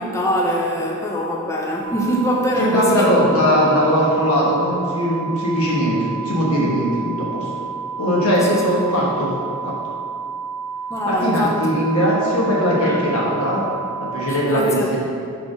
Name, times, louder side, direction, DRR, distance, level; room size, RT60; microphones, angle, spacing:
voice 1, 0.0-3.2 8.5-8.6 10.9-11.7 12.0-12.2 12.8-13.0 14.2-15.0, equal, 15° left, -1 dB, 0.4 m, -23 dB
sound 1, 1.8-14.4, right 6 dB, 85° right, 0.6 m, -30 dB
voice 2, 2.6-6.0 6.2-7.5 8.0-9.3 9.6-9.7 11.1-13.6 14.1-15.0, equal, 80° left, -4 dB, 1.1 m, -19 dB
4.7 x 4.2 x 5.0 m, 2.5 s
head